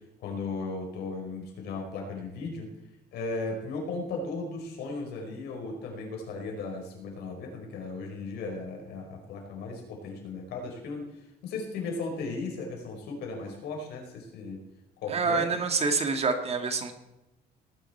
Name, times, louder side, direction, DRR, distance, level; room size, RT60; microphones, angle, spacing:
voice 1, 0.2-2.7 3.1-11.1 11.4-14.6 15.0-15.4, left 3 dB, 75° left, 1 dB, 4.8 m, -36 dB
voice 2, 15.1-16.9, right 4 dB, 35° right, 7 dB, 1.9 m, -27 dB
18.5 x 10.0 x 4.4 m, 0.91 s
cardioid pair, 110°, 17 cm